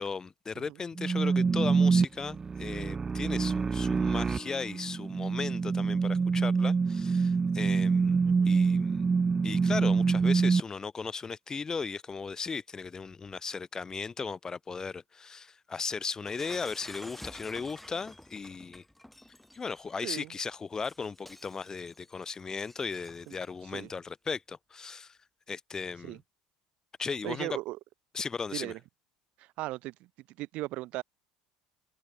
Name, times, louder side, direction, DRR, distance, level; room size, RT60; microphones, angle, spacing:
voice 1, 0.0-9.1 9.4-18.8 19.5-25.2 25.5-26.2 27.0-27.5 28.1-28.7, left 5 dB, 25° left, 0.6 m, -37 dB
sound 1, 1.0-10.6, right 5 dB, 25° right, 0.3 m, -26 dB
voice 2, 8.2-8.6 20.0-20.3 23.3-23.4 23.7-23.9 26.0-26.2 27.2-27.8 28.5-28.8 29.4-29.9 30.4-31.0, right 19 dB, 60° right, 0.6 m, -37 dB
Shatter, 16.3-23.6, left 1 dB, 5° left, 2.4 m, -50 dB
hypercardioid pair, 65°, 2 cm